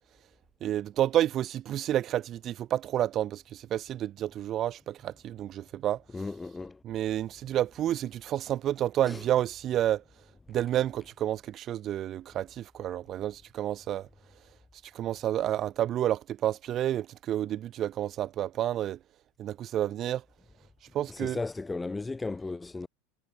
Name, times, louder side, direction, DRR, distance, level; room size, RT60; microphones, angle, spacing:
voice 1, 0.6-6.3 6.8-10.0 10.5-14.1 14.9-19.0 19.4-20.2 20.9-21.4, right 12 dB, 40° right, 1.9 m, -30 dB
voice 2, 6.1-6.8 9.1-9.2 21.1-22.9, left 3 dB, 15° left, 5.7 m, -35 dB
figure-of-eight pair, 80°, 0 cm